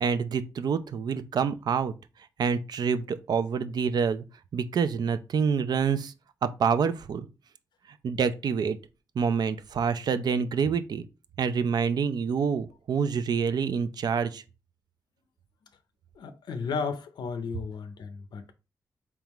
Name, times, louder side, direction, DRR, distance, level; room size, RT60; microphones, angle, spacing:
voice 1, 0.0-1.9 2.4-4.2 4.5-6.1 6.4-7.3 8.0-8.8 9.2-11.0 11.4-14.4, right 6 dB, 70° right, 0.5 m, -27 dB
voice 2, 16.2-18.5, left 5 dB, 90° left, 0.5 m, -34 dB
4.5 x 3.6 x 3.0 m
wide cardioid pair, 100°, 7 cm